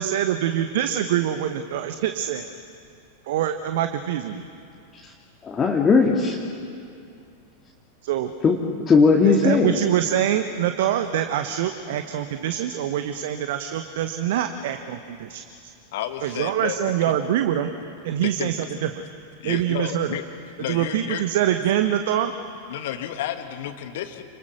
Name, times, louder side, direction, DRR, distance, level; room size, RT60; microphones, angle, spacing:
voice 1, 0.0-2.5 3.3-4.4 8.0-8.3 9.2-15.4 16.2-17.7 18.0-18.9 19.4-20.1 20.7-22.3, right 11 dB, 55° right, 8 dB, 1.1 m, -24 dB
voice 2, 5.4-6.4 8.4-8.6 8.9-9.7, left 4 dB, 20° left, -1 dB, 2.1 m, -18 dB
voice 3, 15.9-17.2 18.2-18.5 19.4-20.2 20.6-21.2 22.7-24.2, left 11 dB, 55° left, 8 dB, 1.8 m, -31 dB
29.5 x 21.5 x 6.3 m, 2.5 s
figure-of-eight pair, 90°, 0 cm